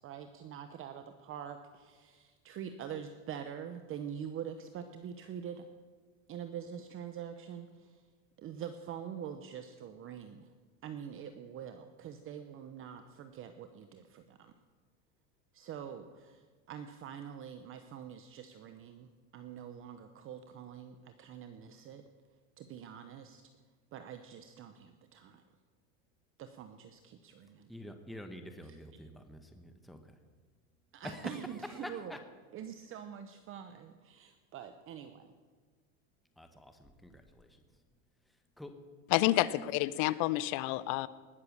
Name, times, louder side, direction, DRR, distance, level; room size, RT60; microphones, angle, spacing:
voice 1, 0.0-5.7 6.3-8.0 8.4-10.5 10.8-14.5 15.5-22.1 22.6-23.4 23.9-25.4 26.4-27.7 28.6-28.8 30.9-32.2 32.5-35.3, right 8 dB, 35° right, 9 dB, 0.8 m, -45 dB
voice 2, 27.7-30.2 31.0-32.2 36.4-37.8 38.3-38.8, left 1 dB, ahead, 6 dB, 1.0 m, -47 dB
voice 3, 39.1-41.1, left 16 dB, 55° left, 18 dB, 0.7 m, -29 dB
19.5 x 6.7 x 7.2 m, 1.4 s
supercardioid pair, 130°, 38 cm